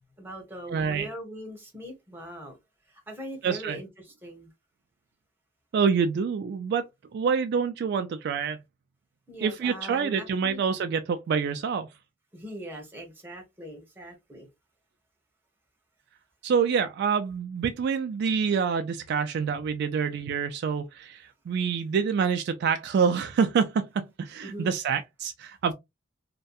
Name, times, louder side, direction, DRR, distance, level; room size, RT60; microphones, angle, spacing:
voice 1, 0.2-2.6 3.1-3.9 4.2-4.5 9.3-10.6 12.3-14.5 24.4-24.7, right 1 dB, 10° right, 0.8 m, -40 dB
voice 2, 0.7-1.1 3.4-3.8 5.7-6.9 7.1-8.6 9.4-11.9 16.4-25.7, right 6 dB, 60° right, 0.3 m, -26 dB
2.6 x 2.2 x 2.3 m
head